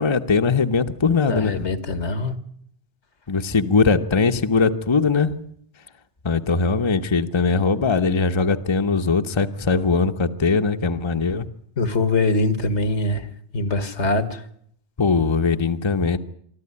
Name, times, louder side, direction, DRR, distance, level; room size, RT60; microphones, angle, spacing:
voice 1, 0.0-1.6 3.3-5.4 6.2-11.5 15.0-16.2, left 4 dB, 25° left, 7 dB, 0.9 m, -20 dB
voice 2, 1.3-2.4 11.8-13.3 13.5-14.4, left 2 dB, 80° left, 12 dB, 2.0 m, -23 dB
24.5 x 13.5 x 9.8 m, 0.67 s
omnidirectional pair, 1.2 m